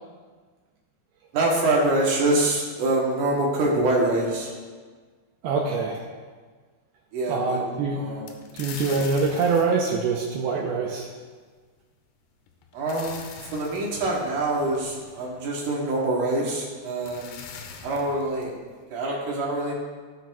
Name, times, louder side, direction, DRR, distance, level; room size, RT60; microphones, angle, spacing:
voice 1, 1.3-4.5 7.1-7.6 7.9-8.3 12.7-17.2 17.8-18.5 18.9-19.7, right 2 dB, 65° right, -3 dB, 2.1 m, -25 dB
voice 2, 5.4-6.0 7.3-8.1 8.5-11.1, right 4 dB, 85° right, -1 dB, 2.3 m, -24 dB
sound 1, 8.3-11.0 12.5-15.6 16.7-16.8 17.0-18.8, left 6 dB, 80° left, 2.6 m, -43 dB
16.5 x 6.0 x 2.3 m, 1.5 s
omnidirectional pair, 5.1 m